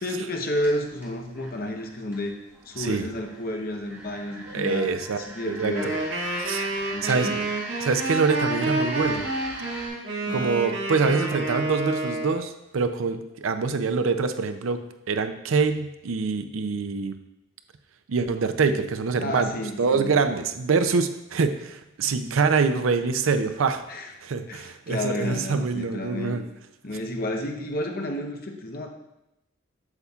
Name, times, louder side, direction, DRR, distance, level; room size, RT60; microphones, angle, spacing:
voice 1, 0.0-2.4 2.6-6.0 6.9-7.5 10.3-10.5 19.2-20.3 23.9-24.1 24.5-26.4 26.8-28.9, left 1 dB, 50° left, 3 dB, 0.9 m, -31 dB
sound 1, 0.6-9.9, right 1 dB, 10° right, 1.5 m, -42 dB
voice 2, 4.5-5.2 5.5-5.9 6.4-6.6 7.0-7.3 7.8-9.3 10.3-14.8 15.1-17.1 18.1-19.5 19.8-23.8 24.2-26.4, right 4 dB, 90° right, 9 dB, 0.5 m, -25 dB
Wind instrument woodwind instrument, 5.7-12.4, right 2 dB, 60° right, 2.0 m, -29 dB
8.0 x 7.0 x 2.4 m, 0.90 s
head